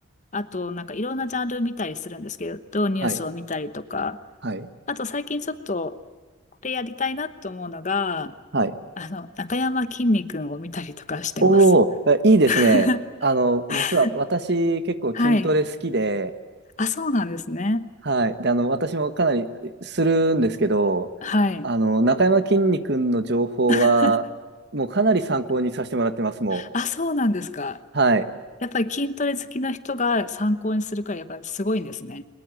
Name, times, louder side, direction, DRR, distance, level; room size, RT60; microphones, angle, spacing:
voice 1, 0.3-4.2 4.9-5.9 6.6-8.3 9.0-11.6 12.5-13.0 13.7-14.1 15.1-15.5 16.8-17.8 21.2-21.7 23.7-24.2 26.5-27.8 28.6-32.2, left 2 dB, 35° left, 12 dB, 1.0 m, -26 dB
voice 2, 11.4-12.9 13.2-16.3 18.1-21.1 21.6-24.2 24.7-26.6 27.9-28.3, right 2 dB, 55° right, 11 dB, 1.4 m, -21 dB
22.5 x 21.5 x 9.2 m, 1.4 s
head